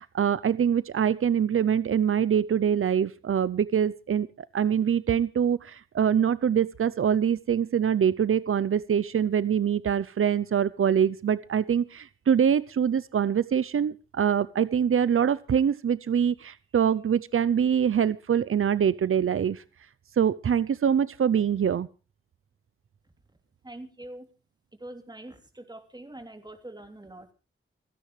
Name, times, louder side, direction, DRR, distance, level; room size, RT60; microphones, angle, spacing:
voice 1, 0.0-19.6 20.2-21.9, right 8 dB, 90° right, 18 dB, 0.6 m, -24 dB
voice 2, 23.6-24.3 24.8-27.3, right 1 dB, 20° right, 6 dB, 3.1 m, -44 dB
28.5 x 10.0 x 3.2 m, 0.33 s
wide cardioid pair, 85°, 21 cm